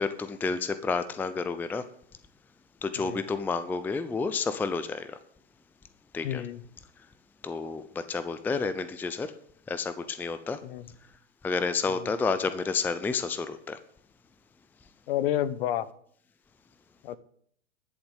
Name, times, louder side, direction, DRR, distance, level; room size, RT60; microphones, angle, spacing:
voice 1, 0.0-1.8 2.8-5.2 6.1-6.4 7.4-9.3 9.7-10.6 11.4-13.8, left 4 dB, 5° left, 12 dB, 0.5 m, -30 dB
voice 2, 6.2-6.6 10.6-10.8 11.9-12.1 15.1-15.9 17.0-17.2, left 12 dB, 55° left, 16 dB, 1.1 m, -30 dB
11.5 x 7.1 x 8.2 m, 0.63 s
hypercardioid pair, 115°, 35 cm